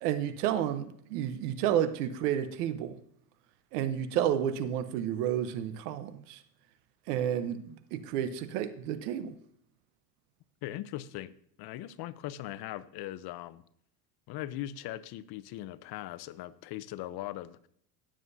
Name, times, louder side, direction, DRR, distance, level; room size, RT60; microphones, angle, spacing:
voice 1, 0.0-3.0 3.7-6.4 7.1-9.3, right 10 dB, 85° right, 1.0 m, -31 dB
voice 2, 10.6-11.3 11.6-13.6 14.3-17.7, left 14 dB, 55° left, 0.7 m, -40 dB
15.5 x 7.5 x 2.7 m
supercardioid pair, 90°, 45 cm